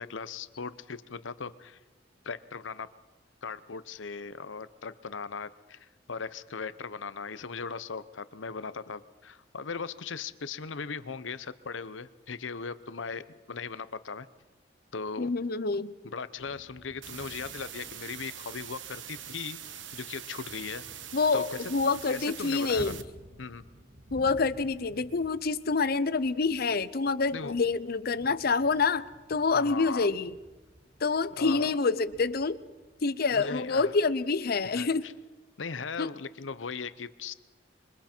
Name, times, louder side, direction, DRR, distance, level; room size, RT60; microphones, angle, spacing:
voice 1, 0.0-1.8 2.2-2.9 3.4-14.3 14.9-15.3 16.0-19.6 19.9-20.9 21.3-21.6 22.1-22.9 23.4-23.6 27.3-27.6 29.5-30.1 31.4-31.7 33.3-33.9 34.7-35.1 35.6-37.3, left 5 dB, 90° left, 14 dB, 0.8 m, -38 dB
voice 2, 15.2-15.9 21.1-23.0 24.1-30.4 31.0-32.6 33.0-35.1 36.0-36.1, left 4 dB, 55° left, 15 dB, 0.7 m, -27 dB
sound 1, 16.4-34.3, equal, 55° right, 2.0 m, -53 dB
sound 2, 17.0-23.0, right 10 dB, 80° right, 1.0 m, -43 dB
27.0 x 23.5 x 4.5 m, 1.2 s
head